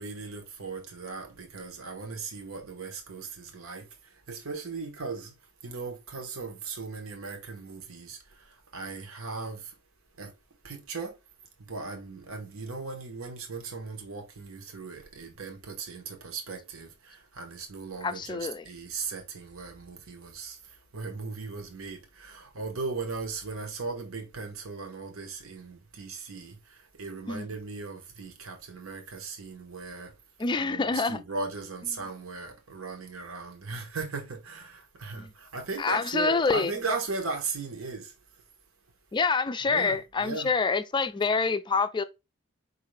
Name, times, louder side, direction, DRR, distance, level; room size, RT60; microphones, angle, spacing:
voice 1, 0.0-5.3 5.6-9.7 10.2-10.3 10.6-11.2 11.6-30.2 30.6-38.1 39.7-40.5, right 4 dB, 85° right, 1.0 m, -38 dB
voice 2, 18.0-18.6 27.3-27.5 30.4-31.2 35.2-35.3 35.8-36.7 39.1-42.0, left 4 dB, 20° left, 0.3 m, -26 dB
4.8 x 2.6 x 3.1 m
head